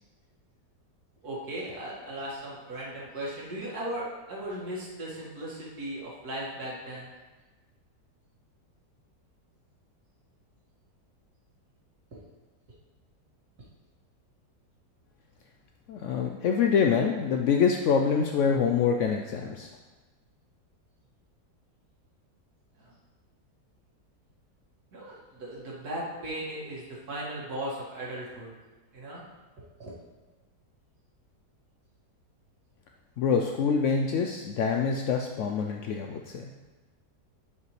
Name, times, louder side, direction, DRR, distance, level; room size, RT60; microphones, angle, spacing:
voice 1, 1.2-7.1 22.8-22.9 24.9-28.5 28.9-29.2 29.8-29.9, right 1 dB, 60° right, -6 dB, 2.5 m, -37 dB
voice 2, 15.9-19.7 33.2-36.5, left 6 dB, 75° left, 2 dB, 0.7 m, -25 dB
11.0 x 5.4 x 3.2 m, 1.2 s
omnidirectional pair, 1.8 m